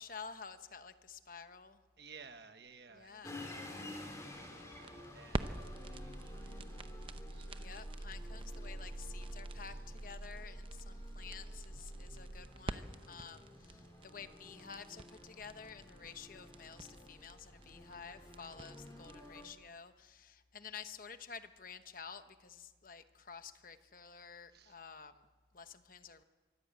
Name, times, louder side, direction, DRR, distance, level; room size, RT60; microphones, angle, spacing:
voice 1, 0.0-1.8 2.9-3.4 7.6-25.3 25.5-26.2, left 6 dB, 50° left, 10 dB, 1.0 m, -51 dB
voice 2, 2.0-3.9 5.1-7.7 16.0-16.2 24.5-24.8, right 5 dB, 65° right, 8 dB, 1.3 m, -58 dB
salvation army, 3.2-19.5, left 2 dB, 15° left, 3.4 m, -53 dB
sound 1, 4.4-19.5, right 2 dB, 30° right, 0.7 m, -45 dB
24.0 x 14.5 x 8.5 m, 1.3 s
head